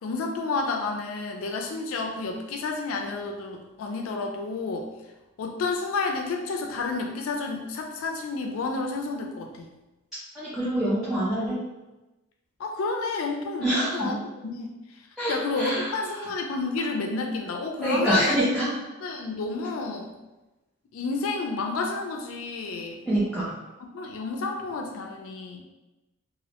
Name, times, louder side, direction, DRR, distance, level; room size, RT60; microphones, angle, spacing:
voice 1, 0.0-4.9 5.4-9.7 12.6-14.2 14.4-14.7 15.3-18.4 19.0-20.1 20.9-23.0 23.9-25.6, left 3 dB, 75° left, 2 dB, 0.3 m, -30 dB
voice 2, 10.3-11.6 13.6-14.2 15.2-16.3 17.8-18.7 23.1-23.5, right 1 dB, ahead, -11 dB, 0.5 m, -26 dB
2.4 x 2.1 x 2.8 m, 1.0 s
head